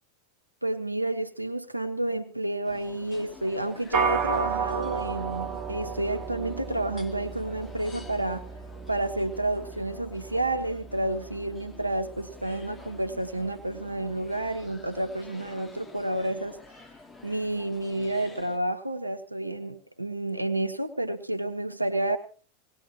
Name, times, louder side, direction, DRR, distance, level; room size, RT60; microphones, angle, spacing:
voice 1, 0.6-8.5 8.9-16.6 17.2-22.2, right 1 dB, 85° right, 6 dB, 1.1 m, -30 dB
sound 1, 2.6-18.6, left 2 dB, 15° left, 1.7 m, -49 dB
sound 2, 3.9-13.5, right 6 dB, 35° right, 1.7 m, -34 dB
21.0 x 19.0 x 2.9 m, 0.39 s
figure-of-eight pair, 90°, 0 cm